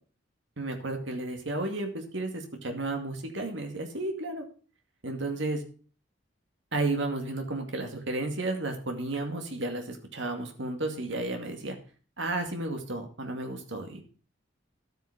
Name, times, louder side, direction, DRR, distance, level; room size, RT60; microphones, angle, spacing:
voice 1, 0.6-4.4 5.0-5.6 6.7-11.8 12.2-14.0, right 2 dB, 65° right, 4 dB, 2.4 m, -32 dB
12.0 x 9.2 x 5.2 m, 0.38 s
head